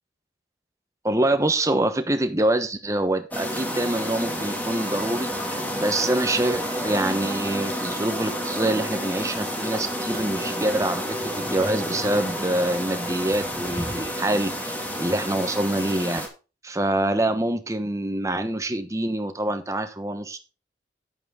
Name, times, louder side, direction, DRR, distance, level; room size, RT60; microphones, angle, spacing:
voice 1, 1.0-16.2 16.6-20.4, right 1 dB, 15° right, 8 dB, 1.0 m, -25 dB
sound 1, 3.3-16.3, equal, 10° left, 2.2 m, -30 dB
9.6 x 8.9 x 3.7 m, 0.31 s
head